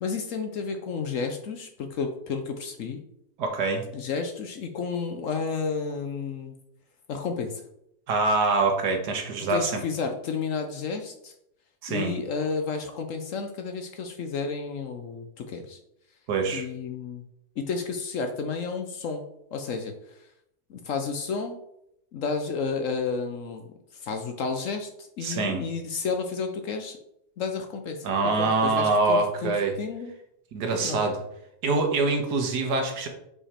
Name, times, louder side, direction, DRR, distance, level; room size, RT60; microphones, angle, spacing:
voice 1, 0.0-3.0 3.9-6.5 7.1-7.6 9.5-11.3 11.9-15.8 16.5-17.2 17.6-19.2 19.5-20.3 20.7-21.6 22.1-23.7 23.9-27.0 27.4-28.1 28.4-29.5 29.8-30.1 30.8-31.0, left 5 dB, 60° left, 5 dB, 0.9 m, -31 dB
voice 2, 3.4-3.8 8.1-9.8 11.8-12.1 16.3-16.7 25.2-25.6 28.0-29.7 30.5-31.2 31.6-33.1, right 3 dB, 80° right, 4 dB, 1.6 m, -24 dB
4.9 x 4.9 x 4.3 m, 0.77 s
omnidirectional pair, 1.8 m